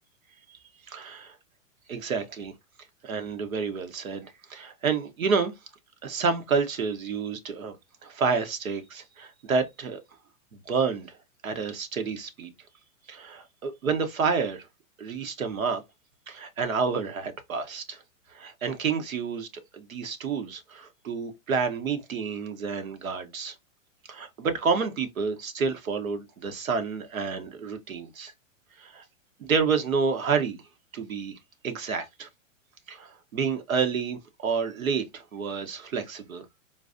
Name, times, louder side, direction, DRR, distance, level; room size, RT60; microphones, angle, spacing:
voice 1, 0.9-1.4 1.9-2.5 3.0-4.2 4.5-5.5 6.0-7.7 8.0-10.0 10.5-11.2 11.4-12.5 13.1-14.6 15.0-15.8 16.3-18.0 18.3-19.5 19.7-23.5 24.1-28.3 28.8-29.0 29.4-30.6 30.9-31.4 31.6-32.3 32.9-36.4, right 5 dB, 85° right, 0.9 m, -29 dB
3.8 x 2.6 x 2.5 m
hypercardioid pair, 120°, 40 cm